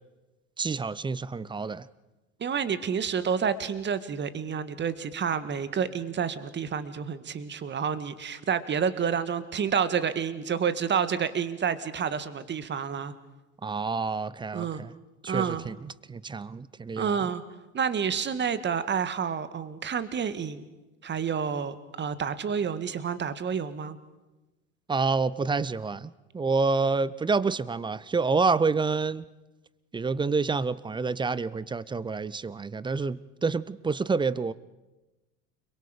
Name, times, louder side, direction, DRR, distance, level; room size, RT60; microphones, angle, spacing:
voice 1, 0.6-1.9 13.6-14.9 15.2-17.2 24.9-29.2 29.9-34.5, right 4 dB, 15° right, 20 dB, 0.6 m, -28 dB
voice 2, 2.4-13.1 14.5-14.8 15.3-15.6 17.0-17.4 17.7-20.7 21.0-24.0, right 7 dB, 30° right, 13 dB, 1.7 m, -29 dB
30.0 x 22.0 x 5.1 m, 1.1 s
figure-of-eight pair, 70°, 37 cm